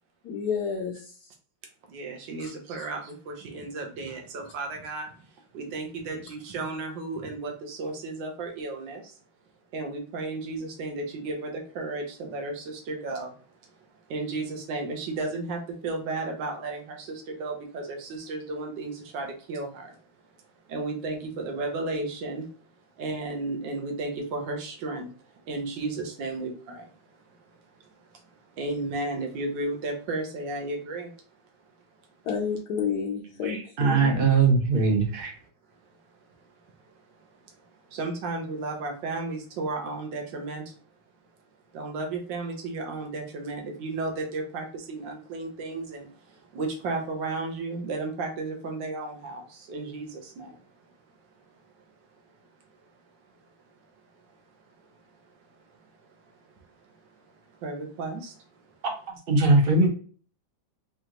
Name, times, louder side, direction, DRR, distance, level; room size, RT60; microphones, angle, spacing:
voice 1, 0.2-1.3 2.4-2.5 32.2-34.2, left 6 dB, 65° left, 0 dB, 1.1 m, -30 dB
voice 2, 1.9-5.1 5.5-9.1 9.7-13.3 14.1-20.0 20.7-22.5 23.0-25.1 25.5-26.9 28.0-28.2 28.5-31.1 37.2-37.3 37.9-40.7 41.7-50.6 56.8-56.9 57.6-58.4, right 3 dB, 75° right, 2 dB, 1.6 m, -33 dB
voice 3, 33.4-35.3 58.8-59.9, right 3 dB, 45° right, 2 dB, 0.7 m, -21 dB
4.9 x 2.5 x 2.8 m, 0.41 s
omnidirectional pair, 2.1 m